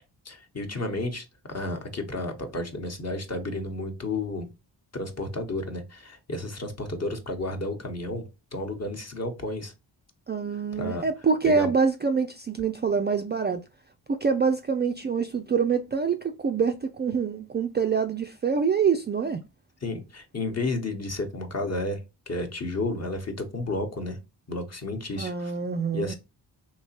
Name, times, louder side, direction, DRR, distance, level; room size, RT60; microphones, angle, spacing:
voice 1, 0.2-4.5 4.9-8.2 8.5-9.7 10.8-11.1 11.4-11.7 19.8-22.0 22.3-24.2 24.5-25.5 25.9-26.1, left 2 dB, 35° left, 1.0 m, -32 dB
voice 2, 10.3-13.6 14.1-19.4 25.2-26.1, right 5 dB, 25° right, 0.3 m, -25 dB
3.1 x 2.9 x 2.8 m
supercardioid pair, 55°, 44 cm